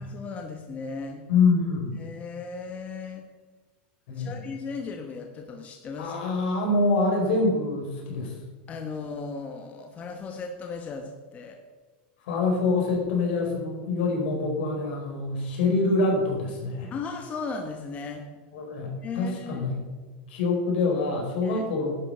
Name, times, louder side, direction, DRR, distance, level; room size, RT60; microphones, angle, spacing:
voice 1, 0.0-1.2 2.0-3.3 4.2-6.2 8.7-11.6 16.9-18.3 19.0-19.6 21.4-21.7, left 4 dB, 25° left, 4 dB, 1.2 m, -36 dB
voice 2, 1.3-2.0 4.1-4.4 6.0-8.3 12.2-16.9 18.5-19.8 20.3-22.0, left 3 dB, 75° left, 0 dB, 4.6 m, -25 dB
11.5 x 9.1 x 5.7 m, 1.3 s
supercardioid pair, 145°, 6 cm